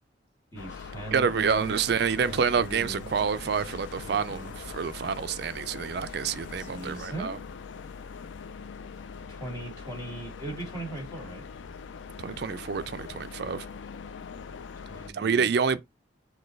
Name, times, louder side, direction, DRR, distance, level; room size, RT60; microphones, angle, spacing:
voice 1, 0.5-1.9 2.1-3.0 3.4-4.5 6.6-7.4 9.3-11.4 14.9-15.5, right 2 dB, 15° left, 2.0 m, -39 dB
sound 1, 0.6-15.1, left 5 dB, 70° left, 0.4 m, -42 dB
voice 2, 1.1-7.4 12.2-13.7 15.1-15.8, right 6 dB, 55° right, 0.3 m, -28 dB
sound 2, 1.4-7.1, left 1 dB, 45° left, 1.1 m, -51 dB
6.2 x 2.2 x 3.2 m
head